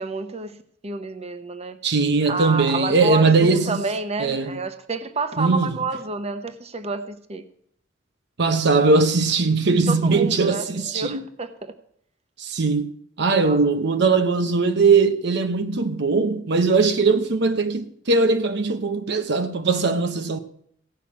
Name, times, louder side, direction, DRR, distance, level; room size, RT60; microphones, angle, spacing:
voice 1, 0.0-1.8 2.3-7.4 9.9-11.7 13.4-13.6, right 3 dB, 35° right, 0.9 m, -29 dB
voice 2, 1.8-3.8 4.2-4.6 5.4-5.7 8.4-11.2 12.4-12.9 13.2-20.4, right 4 dB, 65° right, 0.8 m, -20 dB
16.5 x 5.8 x 8.5 m
head